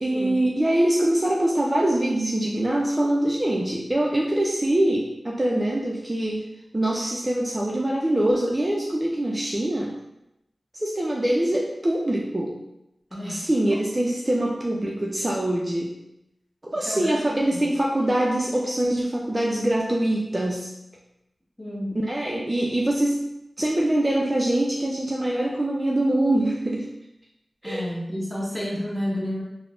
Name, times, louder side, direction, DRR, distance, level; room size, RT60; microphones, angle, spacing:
voice 1, 0.0-6.5 6.7-10.0 10.7-12.5 13.3-15.9 16.6-20.7 21.9-23.3 23.6-26.9 27.6-27.8, right 1 dB, 30° right, -3 dB, 0.4 m, -24 dB
voice 2, 13.1-13.8 16.8-17.6 21.6-21.9 27.6-29.4, equal, 10° left, -4 dB, 1.0 m, -31 dB
3.2 x 2.0 x 2.5 m, 0.87 s
cardioid pair, 45°, 0 cm